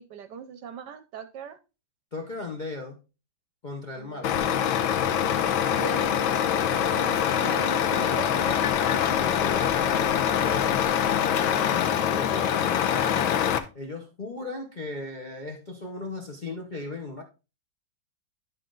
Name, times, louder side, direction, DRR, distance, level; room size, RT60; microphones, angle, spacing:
voice 1, 0.0-1.6 3.9-4.3 5.6-6.2 6.5-8.7, right 7 dB, 70° right, 1.1 m, -39 dB
voice 2, 2.1-3.0 3.6-4.3 8.9-13.4 13.7-17.2, left 2 dB, 45° left, 0.5 m, -37 dB
Truck, 4.2-13.6, left 9 dB, 85° left, 1.5 m, -24 dB
11.0 x 4.3 x 3.8 m
omnidirectional pair, 2.1 m